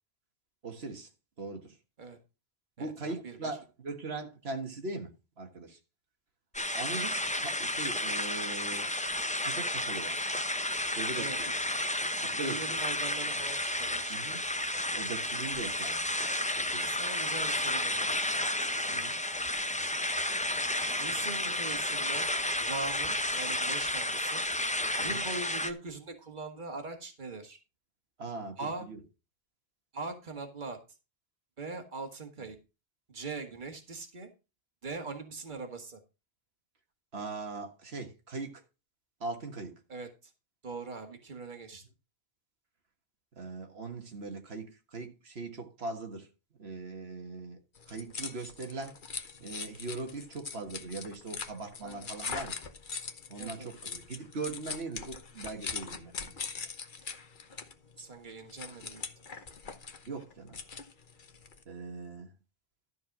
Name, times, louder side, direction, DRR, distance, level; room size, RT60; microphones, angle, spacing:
voice 1, 0.6-1.1 1.4-1.8 2.8-5.8 6.7-8.9 9.4-10.2 10.9-11.5 12.2-12.8 14.1-14.4 14.9-16.9 18.9-19.2 25.0-25.2 28.2-29.0 37.1-38.6 39.2-39.8 43.4-46.3 46.6-47.6 47.9-49.0 49.4-52.5 53.3-56.5 60.1-60.6 61.7-62.3, right 3 dB, 80° right, 1.8 m, -40 dB
voice 2, 2.8-3.5 11.1-11.9 12.4-14.2 16.8-18.1 21.0-22.3 22.6-24.4 25.0-27.6 28.6-28.9 29.9-30.8 31.6-32.6 33.1-34.3 34.8-36.0 39.9-40.3 40.6-41.8 51.8-52.1 53.4-53.7 58.0-59.0, right 3 dB, 50° right, 1.9 m, -41 dB
sound 1, 6.5-25.7, left 1 dB, 10° left, 0.5 m, -32 dB
sound 2, 47.7-61.6, left 5 dB, 55° left, 1.1 m, -42 dB
12.5 x 4.7 x 5.9 m
omnidirectional pair, 1.0 m